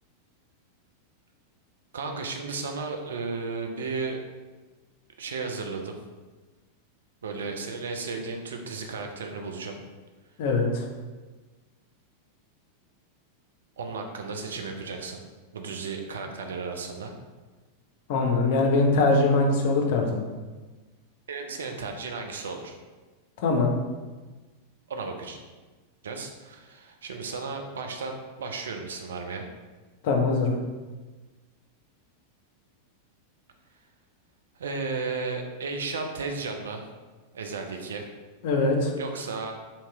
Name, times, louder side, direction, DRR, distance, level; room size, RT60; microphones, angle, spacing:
voice 1, 1.9-4.2 5.2-6.0 7.2-9.8 13.8-15.2 15.5-17.1 21.3-22.8 24.9-25.4 26.0-29.4 34.6-36.8 37.3-38.0 39.0-39.6, right 4 dB, 65° right, 4 dB, 0.4 m, -34 dB
voice 2, 10.4-10.8 18.1-20.2 23.4-23.7 30.0-30.6 38.4-38.9, left 3 dB, 50° left, 2 dB, 0.6 m, -22 dB
2.8 x 2.8 x 3.4 m, 1.3 s
figure-of-eight pair, 90°, 0 cm